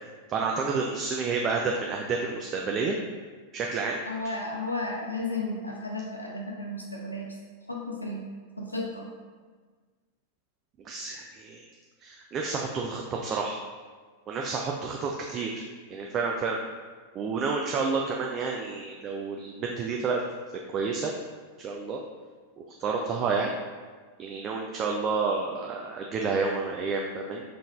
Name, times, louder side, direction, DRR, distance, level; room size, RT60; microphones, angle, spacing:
voice 1, 0.3-3.0 3.5-4.0 10.8-11.6 12.0-13.6 14.3-15.6 15.9-16.6 17.1-20.2 20.7-21.1 21.6-22.0 22.8-23.6 24.2-27.4, right 4 dB, 30° right, 0 dB, 0.4 m, -29 dB
voice 2, 4.1-7.3 7.7-8.3 8.6-9.1, left 2 dB, 85° left, -1 dB, 0.7 m, -33 dB
5.2 x 3.7 x 2.3 m, 1.5 s
figure-of-eight pair, 90°, 0 cm